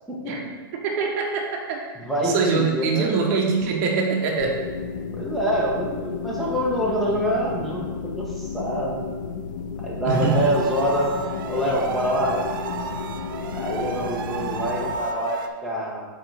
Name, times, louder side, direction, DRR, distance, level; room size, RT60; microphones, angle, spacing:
voice 1, 0.7-1.9 2.2-4.6 10.1-10.5, right 4 dB, 50° right, 0 dB, 1.2 m, -23 dB
voice 2, 1.9-3.1 5.1-7.9 8.2-9.0 9.8-11.1 11.5-12.5 13.5-16.1, equal, ahead, -5 dB, 1.5 m, -25 dB
sound 1, 4.4-15.0, left 6 dB, 60° left, 0.6 m, -33 dB
sound 2, 10.1-15.5, right 4 dB, 70° right, 0.7 m, -33 dB
7.8 x 4.2 x 4.9 m, 1.4 s
hypercardioid pair, 140°, 12 cm